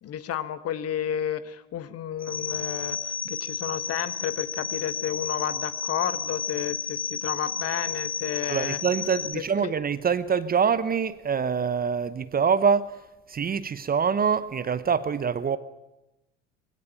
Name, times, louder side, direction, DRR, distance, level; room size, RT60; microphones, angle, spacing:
voice 1, 0.0-8.8 9.3-9.7, left 10 dB, 40° left, 1.5 m, -31 dB
sound 1, 2.2-9.3, left 5 dB, 25° left, 1.1 m, -32 dB
voice 2, 8.5-13.0 13.3-15.6, right 6 dB, 25° right, 0.9 m, -25 dB
20.5 x 17.0 x 9.0 m
figure-of-eight pair, 70°, 37 cm